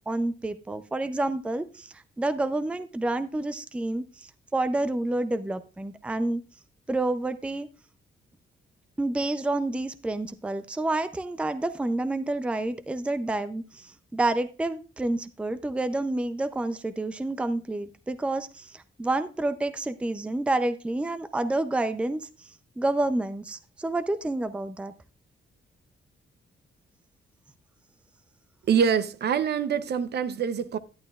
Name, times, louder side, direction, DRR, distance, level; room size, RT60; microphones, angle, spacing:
voice 1, 0.0-6.4 6.9-7.7 9.0-24.9, right 2 dB, 5° right, 0.5 m, -29 dB
voice 2, 28.7-30.8, right 7 dB, 55° right, 0.7 m, -25 dB
11.5 x 11.0 x 2.3 m
wide cardioid pair, 165°, 20 cm